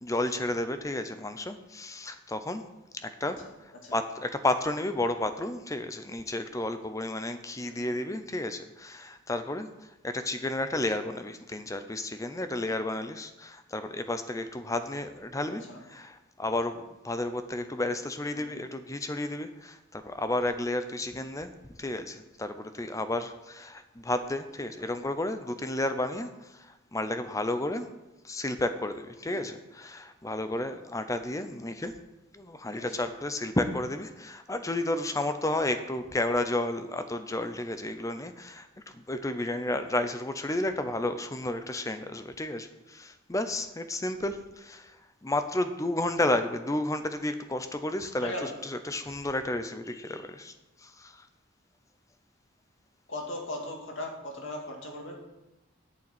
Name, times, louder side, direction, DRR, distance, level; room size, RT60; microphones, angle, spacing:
voice 1, 0.0-2.6 3.2-3.4 3.9-9.7 10.0-15.6 15.9-16.8 17.0-21.5 21.8-26.7 26.9-27.9 28.2-31.9 32.3-38.7 38.9-44.9 45.2-50.5 50.8-51.1, left 1 dB, 15° left, 9 dB, 0.7 m, -32 dB
voice 2, 3.2-4.0 7.6-8.0 15.5-15.8 18.3-18.7 24.8-24.9 29.2-29.4 32.7-33.1 48.2-48.6 53.1-55.2, left 1 dB, 70° left, 1 dB, 2.3 m, -39 dB
8.7 x 6.8 x 7.9 m, 0.99 s
head